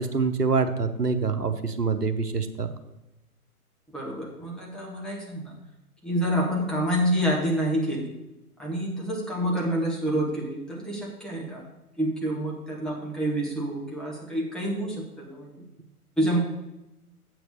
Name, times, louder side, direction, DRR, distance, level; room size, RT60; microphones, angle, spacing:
voice 1, 0.0-2.7, right 4 dB, 90° right, 9 dB, 1.0 m, -25 dB
voice 2, 3.9-5.5 6.0-8.1 8.6-11.7 12.0-15.7 16.2-16.4, equal, ahead, -4 dB, 0.8 m, -28 dB
7.8 x 6.1 x 6.5 m, 0.96 s
figure-of-eight pair, 125°, 46 cm